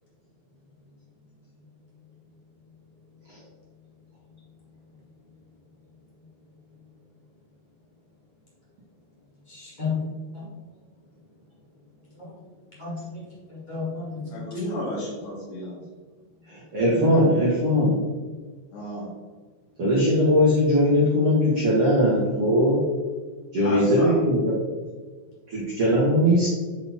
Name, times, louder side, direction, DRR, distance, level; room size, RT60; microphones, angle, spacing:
voice 1, 9.5-10.4 12.2-12.3 12.8-13.2 13.5-14.4, left 4 dB, 45° left, -8 dB, 0.5 m, -32 dB
voice 2, 14.3-15.8 18.7-19.1 23.6-24.2, left 1 dB, 85° left, -10 dB, 4.4 m, -32 dB
voice 3, 16.5-17.9 19.8-22.8 23.5-24.6 25.5-26.5, equal, 85° right, -6 dB, 1.2 m, -20 dB
9.8 x 4.3 x 3.6 m, 1.4 s
omnidirectional pair, 5.1 m